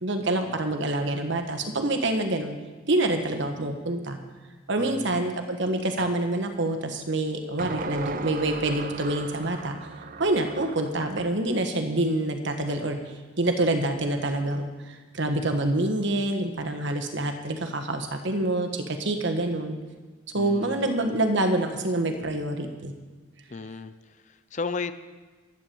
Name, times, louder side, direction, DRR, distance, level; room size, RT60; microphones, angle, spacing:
voice 1, 0.0-2.6 2.9-4.2 4.7-9.8 10.2-13.0 13.4-19.8 20.3-22.9, right 1 dB, 60° right, 5 dB, 1.4 m, -26 dB
voice 2, 4.8-5.3 20.3-21.0 23.5-24.9, left 4 dB, 35° left, 12 dB, 0.6 m, -35 dB
sound 1, 6.0-6.2 7.6-11.3, right 4 dB, 40° right, 0.6 m, -37 dB
12.0 x 9.4 x 7.1 m, 1.3 s
head